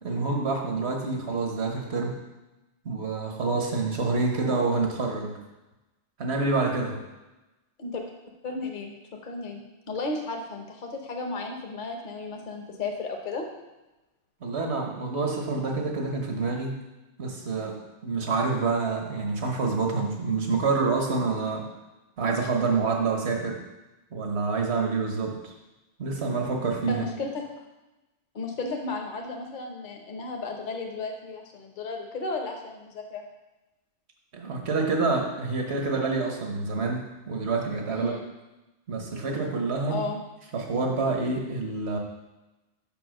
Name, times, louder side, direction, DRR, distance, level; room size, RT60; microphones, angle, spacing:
voice 1, 0.0-2.1 2.8-5.4 6.2-7.0 14.4-16.8 17.2-21.7 22.2-23.6 24.1-25.5 26.0-27.1 34.3-38.1 38.9-40.0 40.5-42.0, right 4 dB, 70° right, 1 dB, 1.4 m, -27 dB
voice 2, 8.4-8.9 9.2-9.6 9.9-13.5 26.9-27.5 28.3-33.2 37.9-38.3 39.9-40.2, left 3 dB, 45° left, 2 dB, 1.0 m, -34 dB
5.4 x 5.4 x 6.4 m, 1.1 s
omnidirectional pair, 1.2 m